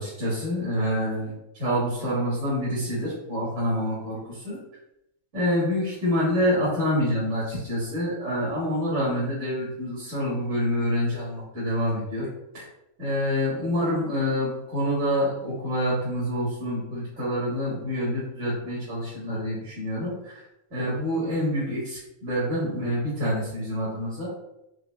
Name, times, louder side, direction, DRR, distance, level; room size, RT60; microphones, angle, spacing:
voice 1, 0.0-1.3 1.6-4.6 5.3-12.3 12.5-12.7 13.0-20.4 20.7-24.3, equal, 50° right, -9 dB, 1.5 m, -27 dB
4.6 x 2.4 x 2.2 m, 0.85 s
omnidirectional pair, 1.6 m